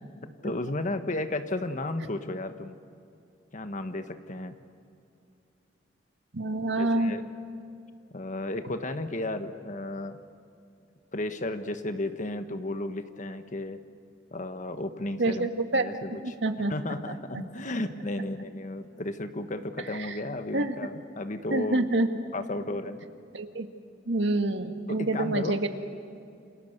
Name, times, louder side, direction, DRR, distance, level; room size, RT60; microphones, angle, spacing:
voice 1, 0.2-2.8 3.5-4.6 6.8-7.2 8.1-10.2 11.1-13.8 14.3-15.5 15.7-16.4 16.7-21.8 22.3-23.0 24.9-25.6, left 2 dB, 45° left, 8 dB, 1.5 m, -33 dB
voice 2, 6.3-7.1 15.2-16.0 16.2-16.7 20.1-20.2 20.5-20.7 21.5-22.1 23.3-23.7 24.1-25.7, right 2 dB, 85° right, 6 dB, 1.8 m, -27 dB
29.0 x 26.5 x 6.8 m, 2.5 s
head